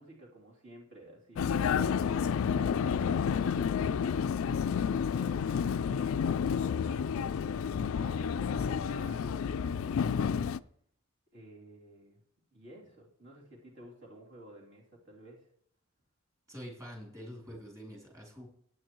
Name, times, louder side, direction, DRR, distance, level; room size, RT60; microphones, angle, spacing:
voice 1, 0.0-1.9 3.0-7.2 7.9-10.4 11.3-12.2 12.5-15.5, right 1 dB, 55° right, -3 dB, 3.1 m, -53 dB
Vehicle, 1.4-10.6, left 7 dB, 65° left, 0.3 m, -30 dB
voice 2, 16.5-18.5, equal, 15° right, -2 dB, 3.1 m, -46 dB
15.5 x 9.3 x 3.1 m, 0.65 s
head